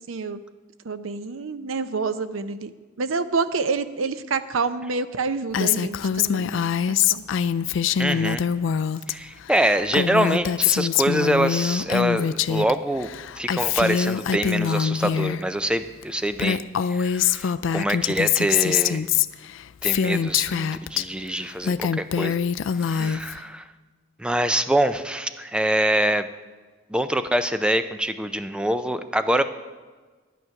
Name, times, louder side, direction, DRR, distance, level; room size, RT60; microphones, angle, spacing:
voice 1, 0.1-0.4 0.8-2.7 3.0-6.7 7.1-7.2 23.0-23.1, right 4 dB, 85° right, 12 dB, 0.6 m, -27 dB
Female speech woman speaking, 5.5-9.1 9.4-12.7 13.0-15.4 16.0-16.1 16.3-21.0 21.5-23.4, left 8 dB, 70° left, 0.3 m, -24 dB
voice 2, 8.0-8.4 9.1-13.1 13.4-16.6 16.9-19.0 19.8-22.4 22.8-23.6 24.2-26.3 26.9-29.4, right 1 dB, 5° right, 10 dB, 0.4 m, -24 dB
11.0 x 9.3 x 5.8 m, 1.4 s
head